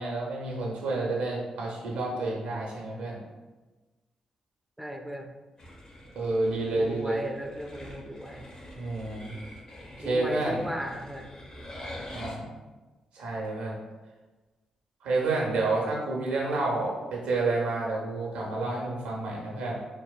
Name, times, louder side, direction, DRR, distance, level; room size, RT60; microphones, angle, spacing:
voice 1, 0.0-3.2 6.1-7.2 8.7-9.3 10.0-10.7 12.1-12.5 13.1-13.8 15.0-19.8, right 2 dB, 80° right, -3 dB, 0.6 m, -29 dB
voice 2, 4.8-5.3 6.7-8.5 10.0-11.3, equal, 5° right, 3 dB, 0.3 m, -36 dB
sound 1, 5.6-12.3, left 1 dB, 45° left, 0.7 m, -45 dB
2.7 x 2.1 x 2.3 m, 1.2 s
hypercardioid pair, 45°, 2 cm